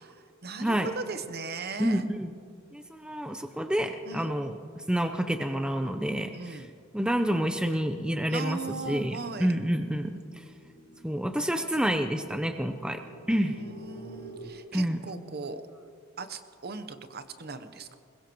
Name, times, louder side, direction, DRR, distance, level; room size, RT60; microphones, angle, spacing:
voice 1, 0.0-2.1 4.1-4.3 6.3-6.7 8.3-9.5 13.4-15.6 16.2-17.9, right 4 dB, 50° right, 9 dB, 0.9 m, -38 dB
voice 2, 1.8-2.3 2.7-4.6 4.9-6.6 6.9-8.6 8.9-10.2 11.0-13.0 13.3-13.6 14.7-15.0, equal, 5° right, 6 dB, 0.5 m, -28 dB
sound 1, 6.7-14.5, right 2 dB, 40° left, 5.7 m, -51 dB
21.0 x 21.0 x 3.0 m, 2.1 s
head